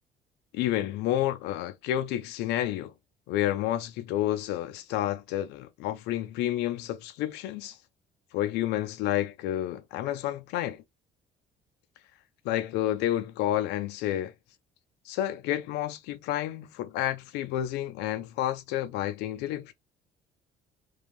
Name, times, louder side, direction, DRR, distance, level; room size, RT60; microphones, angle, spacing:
voice 1, 0.5-2.9 3.3-7.8 8.3-10.8 12.4-14.3 15.1-19.7, left 13 dB, 90° left, 0.4 m, -30 dB
2.5 x 2.3 x 3.0 m
cardioid pair, 110°, 17 cm